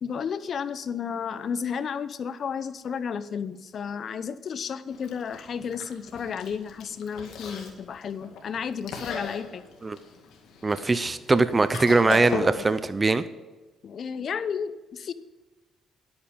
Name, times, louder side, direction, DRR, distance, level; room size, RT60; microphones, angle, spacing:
voice 1, 0.0-9.6 13.8-15.1, left 7 dB, 55° left, 14 dB, 0.7 m, -32 dB
Chewing mastication, 4.9-12.8, left 4 dB, 80° left, 2.0 m, -38 dB
voice 2, 10.6-13.2, right 3 dB, 25° right, 13 dB, 0.6 m, -22 dB
11.0 x 8.8 x 5.2 m, 1.2 s
cardioid pair, 90°, 0 cm